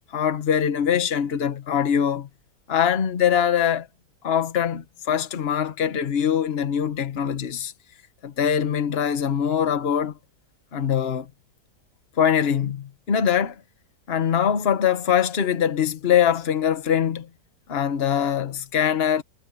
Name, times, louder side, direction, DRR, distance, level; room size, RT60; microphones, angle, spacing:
voice 1, 0.1-2.3 2.7-3.9 4.2-7.7 8.2-10.1 10.7-11.3 12.2-13.6 14.1-17.3 17.7-19.2, left 8 dB, 40° left, 1.3 m, -23 dB
omnidirectional pair, 1.9 m